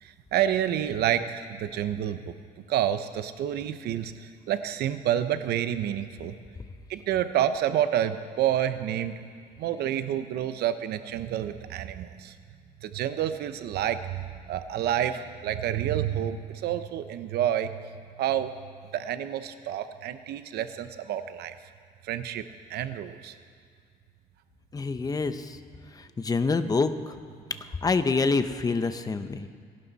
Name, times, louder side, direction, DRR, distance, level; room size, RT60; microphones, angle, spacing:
voice 1, 0.0-2.3 2.7-6.4 6.9-9.2 9.6-12.3 12.8-17.8 18.2-18.5 18.9-21.6 22.0-22.4 22.7-23.3, right 11 dB, 70° right, 10 dB, 0.9 m, -29 dB
voice 2, 24.7-25.6 26.2-26.9 27.8-29.5, left 4 dB, 20° left, 10 dB, 0.9 m, -26 dB
29.0 x 11.5 x 4.2 m, 2.2 s
cardioid pair, 110°, 17 cm